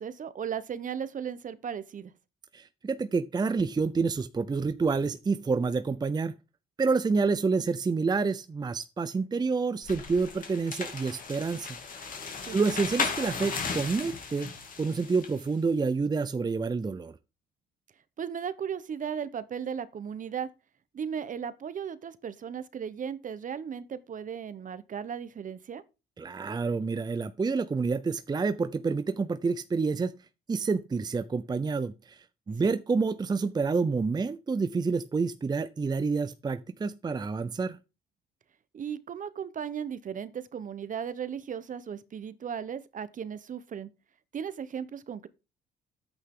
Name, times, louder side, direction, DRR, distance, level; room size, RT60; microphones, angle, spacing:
voice 1, 0.0-2.1 12.4-12.6 18.2-20.5 20.9-25.8 32.6-32.7 38.7-43.9 44.3-45.3, right 7 dB, 45° right, 1.0 m, -36 dB
voice 2, 2.5-6.3 6.8-11.7 12.5-14.5 14.8-17.2 26.2-30.1 30.5-37.8, right 4 dB, 20° right, 0.6 m, -28 dB
sound 1, 9.8-15.4, left 5 dB, 45° left, 2.6 m, -36 dB
9.7 x 8.4 x 3.8 m
cardioid pair, 95°, 19 cm